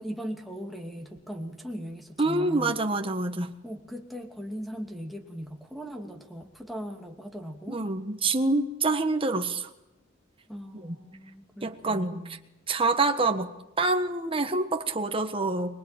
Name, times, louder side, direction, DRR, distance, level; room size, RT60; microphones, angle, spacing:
voice 1, 0.0-2.8 3.6-7.8 10.5-12.4, equal, ahead, 1 dB, 2.6 m, -39 dB
voice 2, 2.2-3.5 7.7-9.7 10.8-10.9 11.6-12.2 12.7-13.5 13.8-15.8, right 2 dB, 25° right, 6 dB, 1.5 m, -26 dB
25.0 x 22.0 x 9.1 m, 0.91 s
head